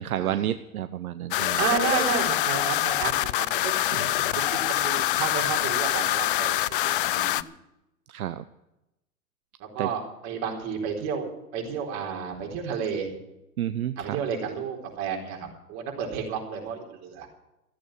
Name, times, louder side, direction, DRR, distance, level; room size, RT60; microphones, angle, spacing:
voice 1, 0.0-1.6 3.9-4.4 8.1-8.4 9.8-9.9 13.6-14.2, right 11 dB, 70° right, 12 dB, 0.8 m, -30 dB
sound 1, 1.3-7.4, left 15 dB, 40° left, 0.4 m, -25 dB
voice 2, 1.5-3.8 4.4-6.6 7.1-7.4 9.6-13.1 14.0-15.4 15.7-17.3, right 7 dB, 35° right, 0 dB, 4.2 m, -31 dB
14.5 x 8.6 x 9.1 m, 0.91 s
hypercardioid pair, 120°, 45 cm